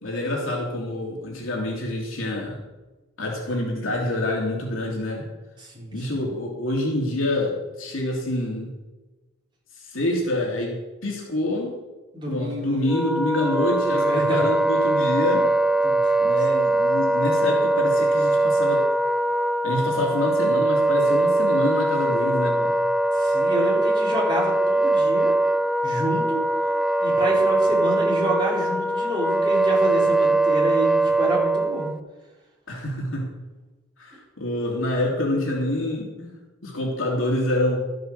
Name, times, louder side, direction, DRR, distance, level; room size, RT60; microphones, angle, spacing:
voice 1, 0.0-2.6 3.2-5.2 5.9-8.7 9.8-10.8 11.0-11.8 12.3-15.5 16.2-18.8 19.6-22.7 32.7-33.3 34.0-36.3 36.6-37.8, left 1 dB, 85° left, -1 dB, 2.9 m, -26 dB
voice 2, 5.6-6.2 12.1-12.8 13.9-14.4 15.8-16.1 23.1-25.3 25.8-26.4 27.0-31.9, right 1 dB, 25° right, -5 dB, 4.1 m, -28 dB
Wind instrument woodwind instrument, 12.9-32.0, right 2 dB, 5° right, 0.3 m, -21 dB
12.5 x 7.8 x 6.7 m, 1.1 s
head